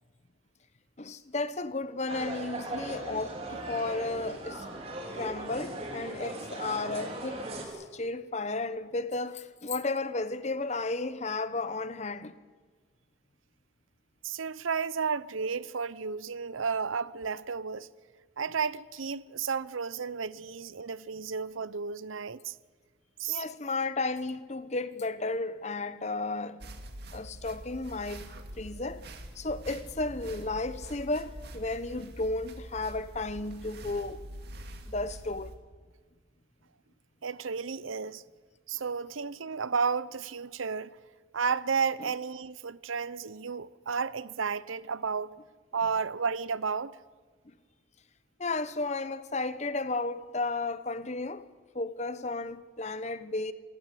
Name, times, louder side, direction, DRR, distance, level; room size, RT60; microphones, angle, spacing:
voice 1, 1.0-4.7 5.1-7.4 7.7-12.4 23.3-26.6 27.1-29.1 29.3-34.2 34.9-35.5 42.0-42.1 45.8-45.9 48.4-51.5 51.7-53.5, left 3 dB, 35° left, 0.9 m, -33 dB
sound 1, 2.1-7.6, right 1 dB, 30° right, 3.8 m, -39 dB
voice 2, 14.2-17.9 18.4-22.6 23.2-23.4 37.2-38.2 38.7-41.0 41.3-45.3 45.7-47.0, right 5 dB, 85° right, 0.7 m, -32 dB
sound 2, 26.6-35.6, right 1 dB, 55° right, 2.2 m, -45 dB
27.5 x 15.0 x 8.4 m
head